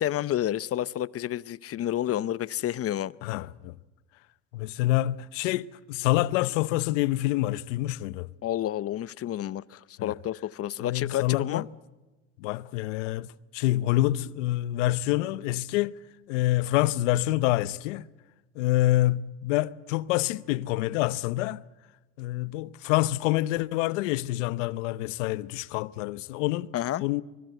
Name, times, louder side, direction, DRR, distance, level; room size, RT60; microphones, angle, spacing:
voice 1, 0.0-3.1 8.4-11.7 26.7-27.0, left 12 dB, 40° left, 0.8 m, -30 dB
voice 2, 3.2-3.7 4.5-8.3 10.0-10.2 10.8-11.6 12.4-16.0 16.3-18.1 18.6-21.6 22.2-26.7 27.0-27.2, left 16 dB, 85° left, 0.8 m, -27 dB
24.5 x 22.0 x 7.9 m
supercardioid pair, 95°, 36 cm